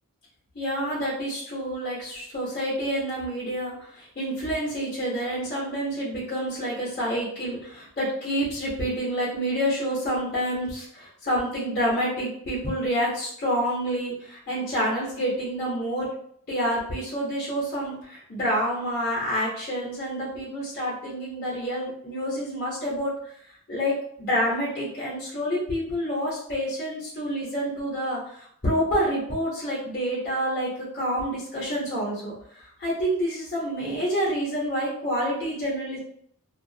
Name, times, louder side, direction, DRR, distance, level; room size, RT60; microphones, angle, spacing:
voice 1, 0.5-16.1 16.5-23.1 23.7-36.0, equal, 40° left, -6 dB, 0.8 m, -28 dB
2.3 x 2.0 x 2.6 m, 0.66 s
head